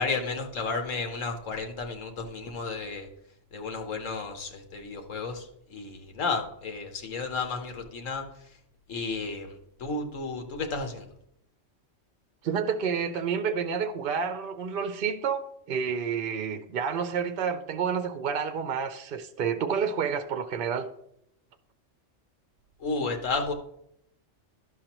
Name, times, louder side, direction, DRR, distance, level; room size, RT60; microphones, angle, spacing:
voice 1, 0.0-3.1 3.5-8.2 8.9-11.1 22.8-23.5, left 4 dB, 90° left, 1.4 m, -32 dB
voice 2, 12.4-20.9, right 6 dB, 60° right, 0.6 m, -29 dB
11.5 x 6.4 x 3.0 m
omnidirectional pair, 1.3 m